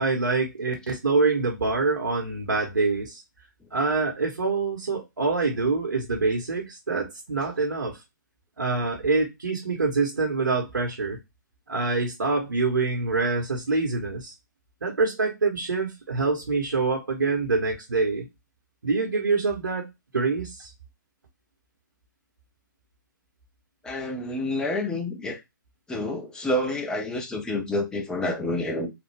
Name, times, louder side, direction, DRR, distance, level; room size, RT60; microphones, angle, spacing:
voice 1, 0.0-3.2 3.7-8.0 8.6-11.2 11.7-14.3 14.8-18.3 18.8-19.8 20.1-20.7, right 3 dB, 75° right, 1.0 m, -25 dB
voice 2, 23.8-25.4 25.9-28.9, left 1 dB, 5° left, 0.6 m, -28 dB
3.3 x 2.2 x 3.3 m
figure-of-eight pair, 125°, 11 cm